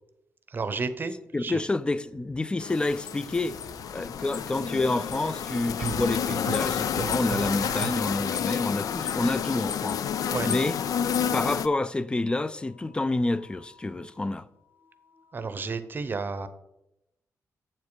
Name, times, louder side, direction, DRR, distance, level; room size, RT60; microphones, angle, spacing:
voice 1, 0.5-1.1 1.4-1.6 10.3-10.5 15.3-16.5, right 4 dB, 35° right, 0.7 m, -31 dB
voice 2, 1.3-3.6 3.9-10.0 10.4-10.8 11.3-14.5, left 2 dB, 15° left, 0.4 m, -28 dB
sound 1, 2.6-11.7, left 8 dB, 75° left, 0.4 m, -30 dB
sound 2, 3.1-3.7 5.8-8.5, right 8 dB, 80° right, 0.9 m, -38 dB
sound 3, 12.3-15.7, left 2 dB, 50° left, 1.8 m, -59 dB
7.6 x 7.3 x 4.7 m
wide cardioid pair, 140°, 6 cm